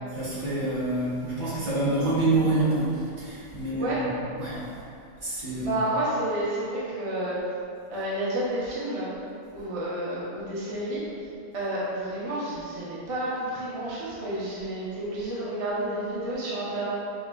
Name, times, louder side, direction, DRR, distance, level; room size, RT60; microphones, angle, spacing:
voice 1, 0.2-2.9 3.2-3.9 4.4-4.6 5.2-5.7, right 2 dB, 60° right, -10 dB, 1.4 m, -26 dB
voice 2, 3.7-4.0 5.6-7.4 7.9-9.1 9.5-11.0 11.5-16.9, right 1 dB, 40° right, -8 dB, 0.5 m, -30 dB
5.4 x 2.4 x 2.2 m, 2.6 s
omnidirectional pair, 1.5 m